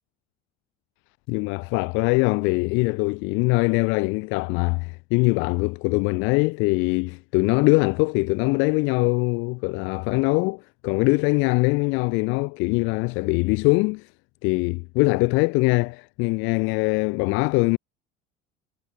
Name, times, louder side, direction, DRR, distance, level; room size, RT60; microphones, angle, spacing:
voice 1, 1.3-14.1 14.4-17.8, left 29 dB, 75° left, 1.2 m, -22 dB
cardioid pair, 125°, 21 cm